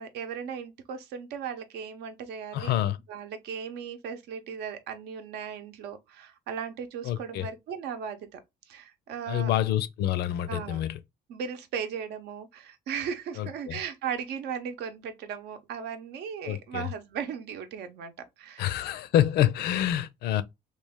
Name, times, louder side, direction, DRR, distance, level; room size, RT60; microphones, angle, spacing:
voice 1, 0.0-2.7 3.1-8.4 8.7-9.5 10.5-10.8 11.3-18.8, right 7 dB, 80° right, 0.8 m, -37 dB
voice 2, 2.5-3.0 7.0-7.5 9.3-11.0 13.4-13.8 16.5-16.9 18.6-20.4, left 12 dB, 75° left, 0.5 m, -27 dB
3.2 x 2.4 x 3.5 m
cardioid pair, 110°, 17 cm